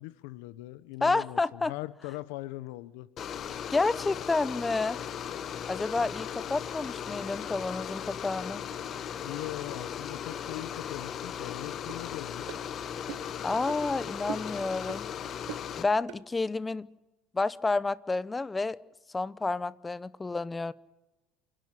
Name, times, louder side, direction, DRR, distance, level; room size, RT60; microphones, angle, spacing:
voice 1, 0.0-3.1 9.2-12.6, left 18 dB, 85° left, 16 dB, 0.9 m, -40 dB
voice 2, 1.0-1.7 3.7-5.0 5.7-8.6 13.4-15.1 15.8-16.9 17.3-18.8 19.1-20.7, left 3 dB, 15° left, 18 dB, 0.7 m, -30 dB
sound 1, 3.2-15.8, left 8 dB, 40° left, 1.3 m, -37 dB
sound 2, 11.9-12.0 12.5-12.6 13.1-13.3 13.7-13.8 14.3-14.6 14.9-15.0 15.5-15.7 16.1-16.2, right 16 dB, 80° right, 1.0 m, -41 dB
27.5 x 11.5 x 9.9 m, 1.1 s
cardioid pair, 140°, 0 cm